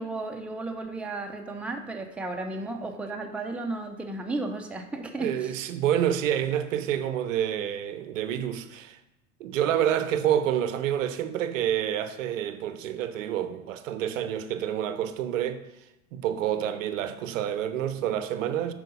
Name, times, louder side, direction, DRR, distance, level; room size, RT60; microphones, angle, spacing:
voice 1, 0.0-5.5, right 2 dB, 5° right, 0.7 m, -34 dB
voice 2, 5.2-9.0 9.4-15.6 16.1-18.7, right 10 dB, 55° right, 0.7 m, -28 dB
9.1 x 5.0 x 5.4 m
figure-of-eight pair, 80°, 46 cm